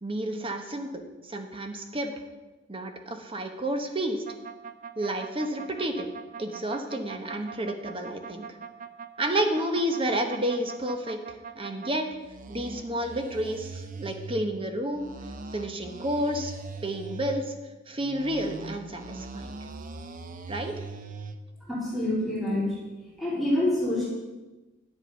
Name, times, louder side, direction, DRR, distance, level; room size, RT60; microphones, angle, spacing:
voice 1, 0.0-2.1 2.7-4.2 5.0-6.1 6.4-8.5 9.2-12.1 12.5-15.1 15.5-16.5 16.8-17.5 17.9-19.5 20.5-20.7, right 1 dB, 30° right, 5 dB, 1.0 m, -30 dB
sound 1, 4.3-11.9 12.2-14.5 14.9-17.4 18.0-21.4, right 4 dB, 45° right, 0.6 m, -41 dB
voice 2, 21.7-22.8 23.2-24.1, left 1 dB, ahead, -9 dB, 3.4 m, -26 dB
10.0 x 7.5 x 5.4 m, 1.1 s
head